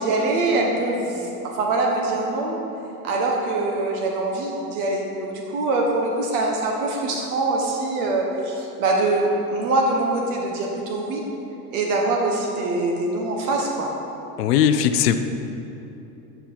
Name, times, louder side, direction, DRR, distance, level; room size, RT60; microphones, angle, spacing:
voice 1, 0.0-2.6 3.0-11.2 11.7-13.9, right 2 dB, 70° right, 0 dB, 1.3 m, -23 dB
voice 2, 14.4-15.2, left 9 dB, 85° left, 9 dB, 0.6 m, -18 dB
9.1 x 5.5 x 4.6 m, 2.9 s
hypercardioid pair, 100°, 46 cm